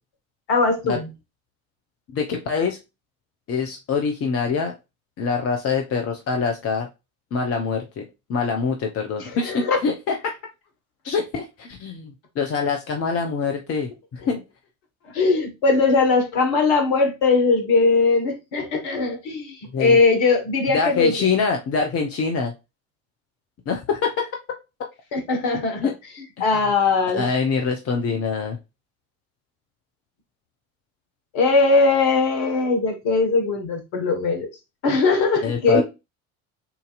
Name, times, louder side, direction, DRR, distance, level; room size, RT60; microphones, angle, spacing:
voice 1, 0.5-1.1 9.2-9.8 15.1-21.2 25.1-25.9 26.4-27.3 31.3-34.5 34.8-35.8, left 4 dB, 55° left, 1.7 m, -20 dB
voice 2, 2.1-2.8 3.5-4.7 5.2-6.9 7.3-8.0 8.3-10.3 11.0-14.4 19.7-20.0 20.7-22.5 23.7-24.3 25.8-25.9 26.5-26.6 27.1-28.6 35.4-35.8, left 5 dB, 35° left, 1.0 m, -24 dB
6.8 x 2.8 x 2.5 m
figure-of-eight pair, 60°, 42 cm